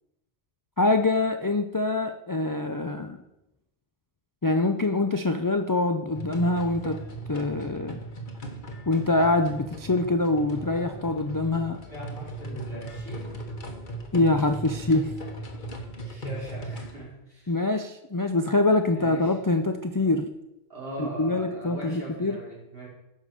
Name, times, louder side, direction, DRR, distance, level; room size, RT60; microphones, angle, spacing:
voice 1, 0.8-3.2 4.4-7.0 7.3-8.0 8.9-11.8 14.1-15.1 17.5-20.3 21.0-22.4, left 2 dB, 30° left, 7 dB, 0.4 m, -24 dB
sound 1, 6.1-17.0, right 1 dB, 50° left, 1.4 m, -38 dB
voice 2, 10.4-11.3 11.9-13.4 16.0-17.5 18.9-19.4 20.7-22.9, right 1 dB, 60° right, -4 dB, 3.7 m, -40 dB
10.0 x 5.4 x 6.6 m, 0.90 s
omnidirectional pair, 1.1 m